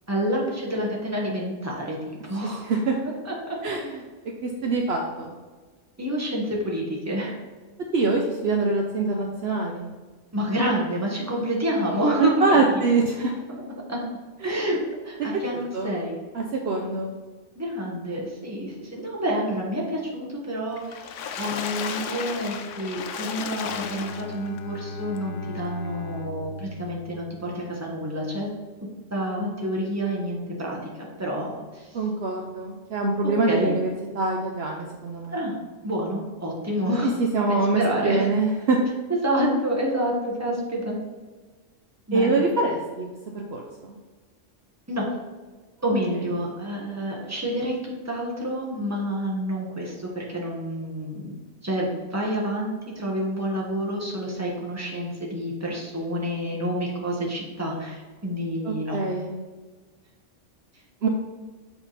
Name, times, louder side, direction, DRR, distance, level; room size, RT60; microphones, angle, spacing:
voice 1, 0.1-2.0 2.3-2.7 3.2-3.6 6.0-7.3 10.3-12.4 13.9-14.1 14.4-14.8 15.0-16.2 17.6-21.1 21.3-28.5 29.1-30.8 31.2-31.6 33.2-33.7 35.3-35.5 35.8-37.1 37.4-38.2 39.2-41.0 42.1-42.4 44.9-45.1 45.8-51.3 51.6-59.0, equal, 15° right, -3 dB, 1.4 m, -28 dB
voice 2, 2.6-3.0 3.6-4.0 4.4-5.3 7.9-9.9 12.2-13.3 14.4-14.7 15.5-15.9 16.3-17.1 31.9-33.9 34.1-35.4 37.0-38.8 42.1-43.1 43.3-44.0 58.6-59.3 61.0-61.1, right 3 dB, 60° right, 1 dB, 0.9 m, -24 dB
Water / Splash splatter, 20.8-24.6 25.2-25.3 25.6-25.7, left 7 dB, 80° left, 0.9 m, -33 dB
Bowed string instrument, 23.6-28.0, left 2 dB, 55° left, 0.7 m, -38 dB
7.9 x 3.8 x 4.1 m, 1.3 s
omnidirectional pair, 1.3 m